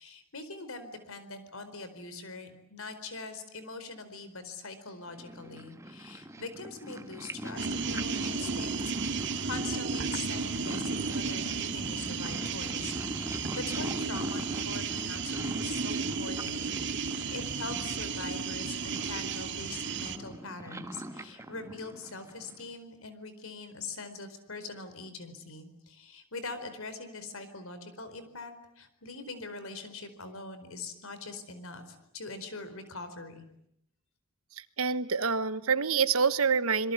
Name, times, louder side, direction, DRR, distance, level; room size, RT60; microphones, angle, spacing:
voice 1, 0.0-8.8 9.1-33.4, left 3 dB, 75° left, 11 dB, 4.5 m, -43 dB
Purr, 5.1-22.7, right 1 dB, 15° right, 1.4 m, -42 dB
sound 1, 7.6-20.2, right 5 dB, 60° right, 2.1 m, -33 dB
voice 2, 34.6-36.9, right 5 dB, 80° right, 13 dB, 1.4 m, -27 dB
27.0 x 22.5 x 9.7 m, 0.78 s
head